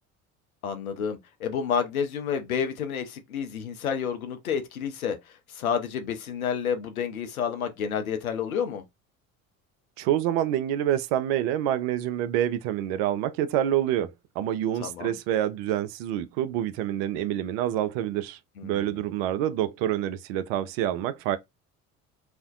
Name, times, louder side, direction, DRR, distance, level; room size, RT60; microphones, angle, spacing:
voice 1, 0.6-8.8 14.8-15.1 18.6-19.0, left 7 dB, 80° left, 0.6 m, -30 dB
voice 2, 10.0-21.4, right 11 dB, 50° right, 0.4 m, -27 dB
2.5 x 2.1 x 2.4 m
figure-of-eight pair, 60°, 42 cm